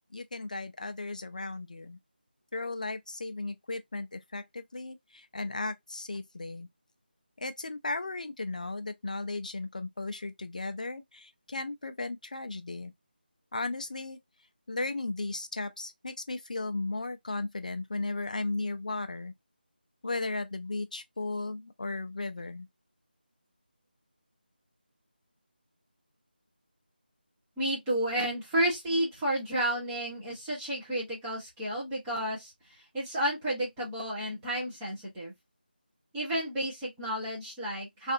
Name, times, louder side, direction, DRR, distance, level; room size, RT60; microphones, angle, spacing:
voice 1, 0.1-2.0 2.5-6.7 7.4-12.9 13.5-14.2 14.7-19.3 20.0-22.7, left 2 dB, 50° left, 0.4 m, -35 dB
voice 2, 27.6-32.5 32.9-35.3 36.1-38.1, right 1 dB, 5° right, 0.7 m, -31 dB
2.7 x 2.4 x 2.5 m
figure-of-eight pair, 170°, 6 cm